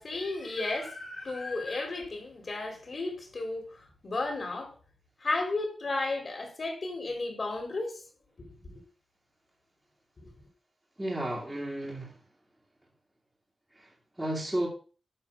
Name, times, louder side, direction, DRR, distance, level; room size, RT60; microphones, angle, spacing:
voice 1, 0.0-3.6 4.0-4.7 5.2-8.0 8.4-8.8 10.2-10.3, left 2 dB, 45° left, 3.0 m, -33 dB
voice 2, 11.0-12.2 13.8-13.9 14.2-14.7, right 1 dB, 15° right, 2.2 m, -32 dB
9.8 x 3.7 x 6.2 m
wide cardioid pair, 100°, 0 cm